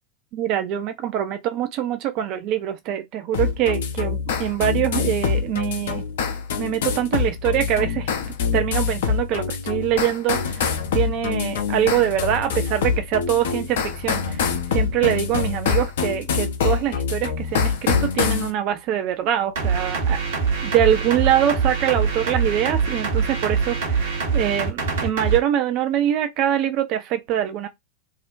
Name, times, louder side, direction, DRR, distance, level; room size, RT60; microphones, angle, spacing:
voice 1, 0.3-6.1 6.6-8.1 8.5-20.2 20.6-27.7, right 11 dB, 40° right, 0.4 m, -24 dB
sound 1, 3.3-18.5, left 6 dB, 55° left, 0.4 m, -25 dB
sound 2, 19.6-25.4, right 5 dB, 60° right, 0.9 m, -23 dB
2.4 x 2.1 x 2.4 m
figure-of-eight pair, 90°, 0 cm